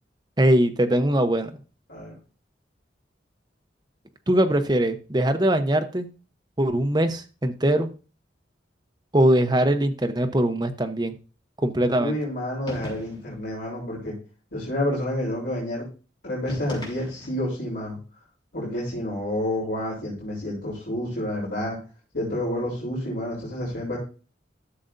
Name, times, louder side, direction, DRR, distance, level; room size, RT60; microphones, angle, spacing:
voice 1, 0.4-1.5 4.3-6.1 6.6-7.9 9.1-11.1 11.6-12.2, right 1 dB, 20° right, 6 dB, 0.8 m, -21 dB
voice 2, 12.0-14.1 14.5-15.9 16.2-18.0 18.5-21.8 22.1-24.0, left 1 dB, 70° left, -5 dB, 3.6 m, -29 dB
sound 1, 12.7-13.4 16.5-17.5, left 1 dB, 25° left, 3.4 m, -38 dB
12.5 x 6.7 x 2.6 m, 0.35 s
head